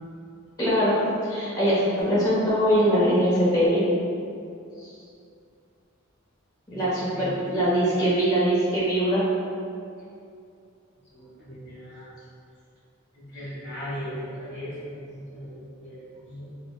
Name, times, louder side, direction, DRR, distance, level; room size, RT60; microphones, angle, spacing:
voice 1, 0.6-3.9 4.8-4.9 6.7-9.2, equal, 20° left, -9 dB, 1.0 m, -22 dB
voice 2, 6.7-7.3 11.1-12.2 13.1-16.4, equal, 55° left, -8 dB, 1.2 m, -38 dB
5.0 x 2.4 x 2.3 m, 2.5 s
head